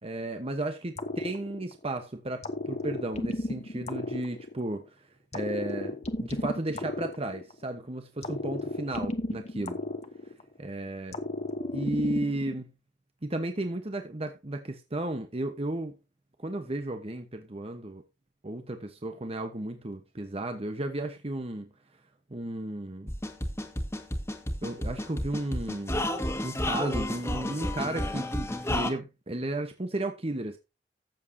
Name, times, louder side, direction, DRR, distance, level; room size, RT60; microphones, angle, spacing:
voice 1, 0.0-5.1 5.3-9.8 10.6-11.2 11.7-12.7 13.2-15.9 16.4-18.0 18.4-21.7 22.3-23.1 24.6-26.0 26.4-30.6, right 1 dB, 35° right, 1.1 m, -34 dB
sound 1, 1.0-2.0 2.4-4.8 5.3-7.7 8.2-10.6 11.1-12.6, left 1 dB, 40° left, 1.1 m, -34 dB
sound 2, 23.1-28.9, left 1 dB, 15° left, 1.8 m, -31 dB
14.5 x 7.4 x 2.8 m
head